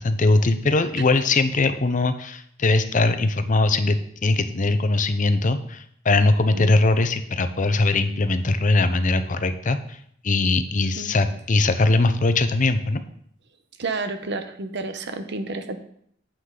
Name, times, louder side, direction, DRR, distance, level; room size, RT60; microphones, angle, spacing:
voice 1, 0.0-10.0 10.2-13.0, left 2 dB, 40° left, 10 dB, 0.7 m, -21 dB
voice 2, 13.8-15.8, right 3 dB, 60° right, 8 dB, 0.9 m, -30 dB
9.4 x 7.7 x 3.8 m, 0.67 s
head